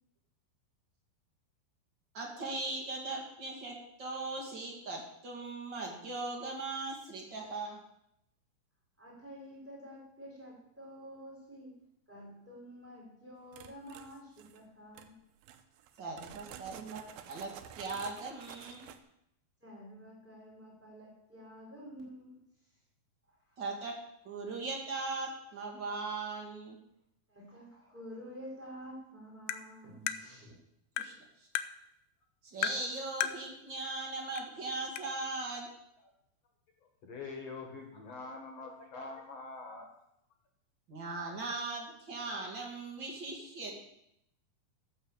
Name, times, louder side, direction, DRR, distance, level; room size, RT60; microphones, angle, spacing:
voice 1, 2.1-7.8 16.0-17.0 17.3-18.9 23.6-24.0 24.2-26.8 31.0-31.5 32.4-35.7 40.9-43.8, right 3 dB, 35° right, -1 dB, 2.6 m, -39 dB
voice 2, 9.0-15.2 19.6-22.4 27.3-30.5, equal, 5° right, -4 dB, 4.0 m, -49 dB
sound 1, 13.5-14.6 14.9-15.1 15.4-19.0, right 10 dB, 85° right, 2.6 m, -50 dB
Tap, 29.5-29.6 30.1-30.2 31.0-31.1 31.5-31.7 32.6-32.8 33.2-33.4 34.4-34.5 35.0-35.1, left 10 dB, 80° left, 2.2 m, -35 dB
voice 3, 36.8-39.9, left 3 dB, 55° left, 2 dB, 2.3 m, -44 dB
13.5 x 5.9 x 7.5 m, 0.77 s
omnidirectional pair, 4.2 m